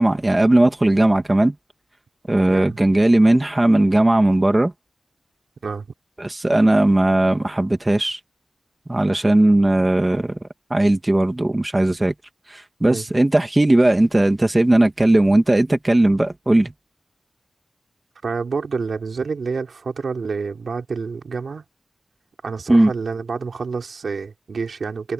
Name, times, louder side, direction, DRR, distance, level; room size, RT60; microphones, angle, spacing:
voice 1, 0.0-1.5 2.3-4.7 6.2-8.2 8.9-10.4 10.7-12.1 12.5-16.7 22.7-22.9, right 1 dB, 20° right, 2.2 m, -17 dB
voice 2, 2.5-2.8 5.6-5.9 12.9-13.0 18.2-21.6 22.4-25.1, right 5 dB, 80° right, 3.8 m, -28 dB
open air
wide cardioid pair, 95°, 0 cm